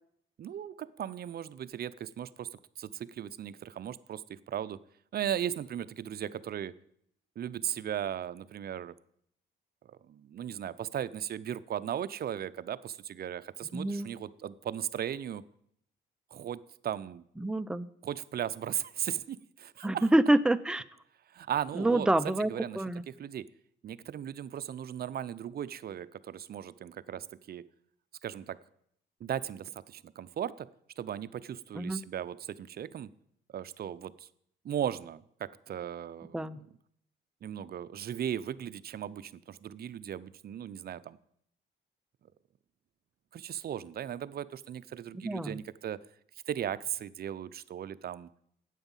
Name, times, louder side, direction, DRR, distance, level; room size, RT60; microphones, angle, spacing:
voice 1, 0.4-4.8 5.1-6.7 7.4-8.9 9.8-15.4 16.3-17.2 18.0-20.1 21.3-22.1 22.5-23.4 23.8-27.6 28.2-28.6 29.2-30.7 31.0-33.1 33.5-34.3 34.6-36.6 37.4-41.2 43.3-46.0 46.5-48.3, right 10 dB, 50° right, 16 dB, 0.6 m, -37 dB
voice 2, 13.7-14.1 17.4-17.9 19.8-20.8 21.8-23.0 31.7-32.0 36.3-36.6 45.2-45.6, right 1 dB, 5° right, 12 dB, 0.5 m, -27 dB
9.2 x 8.2 x 7.3 m, 0.69 s
cardioid pair, 90°, 20 cm